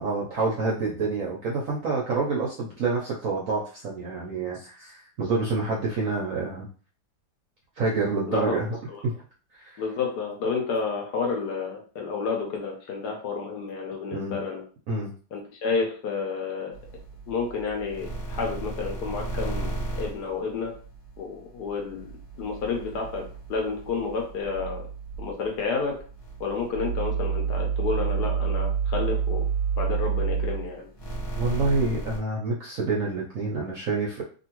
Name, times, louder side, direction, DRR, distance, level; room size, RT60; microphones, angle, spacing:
voice 1, 0.0-6.7 7.8-8.8 9.0-9.1 9.5-9.8 14.1-14.4 14.9-15.1 31.4-34.2, right 3 dB, 70° right, -3 dB, 0.8 m, -27 dB
voice 2, 8.3-8.6 8.9-9.0 9.8-14.6 15.3-16.8 17.3-20.8 21.2-22.1 22.4-24.9 25.2-26.0 26.4-29.4 29.7-30.9, left 4 dB, 70° left, 1 dB, 1.1 m, -30 dB
sound 1, 16.7-21.2 21.5-32.2, right 6 dB, 45° left, 1.2 m, -30 dB
2.9 x 2.6 x 2.9 m, 0.39 s
omnidirectional pair, 2.1 m